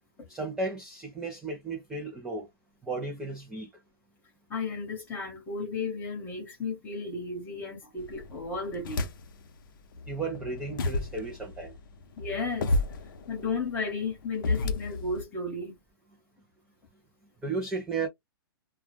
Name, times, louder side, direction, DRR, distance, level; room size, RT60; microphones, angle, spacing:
voice 1, 0.3-2.5 2.8-3.7 10.1-11.7 17.4-18.1, right 3 dB, 5° right, 0.3 m, -34 dB
voice 2, 4.5-9.1 12.2-12.8 13.3-15.7, left 4 dB, 15° left, 1.0 m, -34 dB
sound 1, 8.0-9.5 9.9-15.2, left 2 dB, 60° left, 0.6 m, -32 dB
2.2 x 2.1 x 3.1 m
hypercardioid pair, 160°, 13 cm